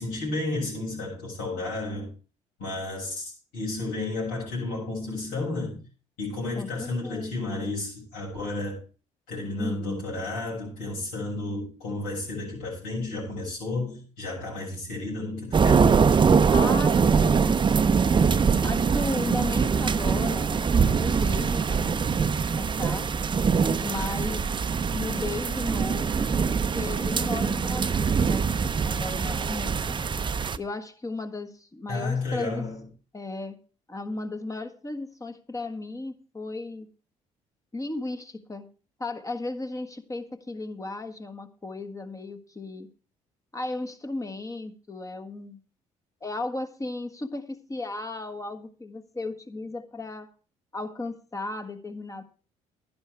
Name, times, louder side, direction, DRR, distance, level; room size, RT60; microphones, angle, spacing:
voice 1, 0.0-2.1 2.6-5.8 6.2-8.8 9.3-16.0 31.9-32.8, left 2 dB, 80° left, -5 dB, 7.2 m, -32 dB
voice 2, 6.6-7.3 9.5-10.1 16.5-18.1 18.6-23.1 23.8-24.5 24.9-26.3 26.7-30.0 30.6-32.6 33.1-33.6 33.9-36.9 37.7-38.7 39.0-42.9 43.5-45.6 46.2-50.3 50.7-52.2, left 2 dB, 20° left, 7 dB, 1.5 m, -35 dB
sound 1, 15.5-30.6, right 5 dB, 30° right, 0.7 m, -23 dB
11.5 x 10.5 x 4.6 m, 0.36 s
hypercardioid pair, 60°, 16 cm